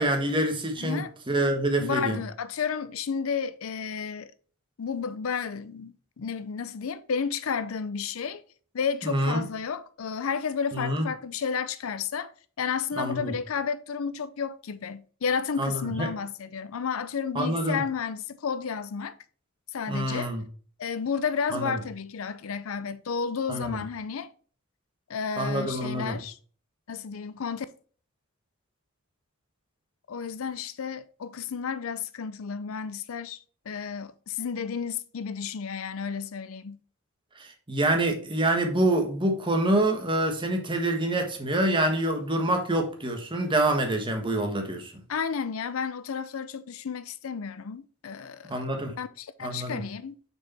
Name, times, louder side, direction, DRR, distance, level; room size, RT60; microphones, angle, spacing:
voice 1, 0.0-2.2 9.0-9.4 10.7-11.1 13.0-13.3 15.6-16.1 17.3-17.8 19.9-20.4 21.5-21.7 23.5-23.8 25.4-26.1 37.4-44.9 48.5-48.9 49.4-49.8, right 1 dB, 25° right, 1.3 m, -26 dB
voice 2, 0.8-1.1 1.8-4.3 4.8-8.4 8.7-12.3 12.6-19.1 19.7-20.3 20.8-24.3 25.1-26.4 26.9-27.7 30.1-36.8 45.1-48.6 49.0-50.2, left 6 dB, 75° left, 0.5 m, -32 dB
6.0 x 4.8 x 4.2 m
head